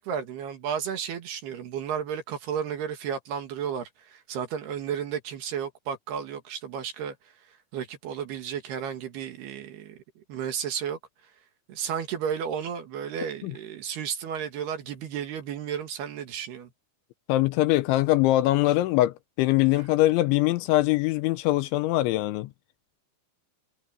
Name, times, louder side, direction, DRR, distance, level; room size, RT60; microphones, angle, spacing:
voice 1, 0.0-7.2 7.7-11.0 11.7-16.7 19.8-19.9, right 8 dB, 60° right, 3.5 m, -33 dB
voice 2, 17.3-22.5, left 16 dB, 85° left, 2.9 m, -22 dB
omnidirectional pair, 5.7 m